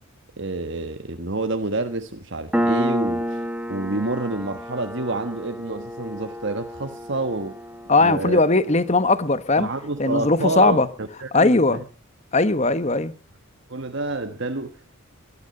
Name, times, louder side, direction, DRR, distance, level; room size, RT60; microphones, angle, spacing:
voice 1, 0.4-7.6 8.0-8.4 9.5-11.8 13.7-15.0, right 2 dB, 55° right, 1.3 m, -28 dB
Piano, 2.5-9.7, equal, 5° right, 1.2 m, -30 dB
voice 2, 7.9-9.7 10.0-10.9 11.3-11.8 12.3-13.1, left 3 dB, 30° left, 1.1 m, -19 dB
21.0 x 12.5 x 5.4 m
head